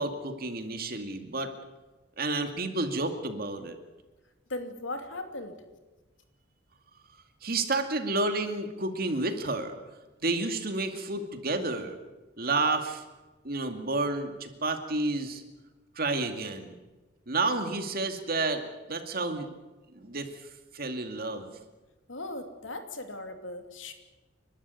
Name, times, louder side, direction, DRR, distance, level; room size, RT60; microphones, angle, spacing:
voice 1, 0.0-1.5 2.2-3.8 7.4-9.7 10.2-12.0 12.4-13.0 13.4-15.4 16.0-16.7 17.3-18.6 18.9-19.5 20.0-20.3 20.7-21.5, right 2 dB, 50° right, 7 dB, 2.4 m, -30 dB
voice 2, 4.5-5.6 22.1-23.9, left 2 dB, 85° left, 6 dB, 2.8 m, -38 dB
30.0 x 12.5 x 9.7 m, 1.2 s
head